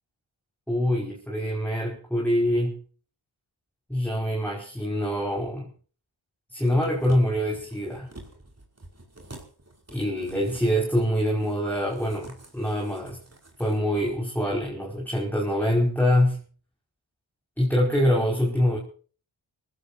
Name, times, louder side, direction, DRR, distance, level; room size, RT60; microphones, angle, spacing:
voice 1, 0.7-2.8 3.9-5.7 6.5-8.1 9.9-13.2 13.6-16.4 17.6-18.8, equal, 5° left, -1 dB, 5.3 m, -25 dB
sound 1, 6.6-13.8 14.1-14.2, right 2 dB, 35° right, 5.1 m, -48 dB
25.5 x 16.0 x 2.7 m, 0.41 s
cardioid pair, 55°, 46 cm